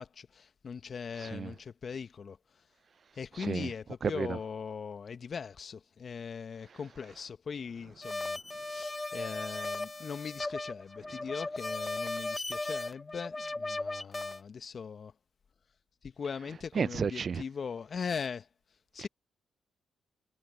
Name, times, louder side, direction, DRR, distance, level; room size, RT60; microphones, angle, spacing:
voice 1, 0.0-2.7 3.1-15.1 16.0-18.5 18.9-19.1, left 6 dB, 50° left, 1.3 m, -40 dB
sound 1, 8.0-14.4, left 2 dB, 20° left, 1.4 m, -37 dB
voice 2, 16.8-17.4, right 6 dB, 50° right, 0.6 m, -31 dB
hypercardioid pair, 45°, 0 cm